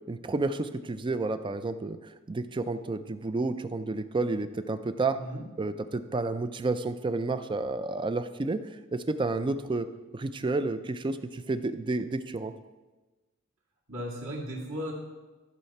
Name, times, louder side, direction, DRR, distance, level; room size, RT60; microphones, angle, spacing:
voice 1, 0.1-5.2 5.6-9.9 10.1-12.5, right 3 dB, 20° right, 11 dB, 0.4 m, -31 dB
voice 2, 13.9-14.9, equal, 65° right, -3 dB, 2.3 m, -36 dB
14.0 x 5.7 x 4.2 m, 1.2 s
head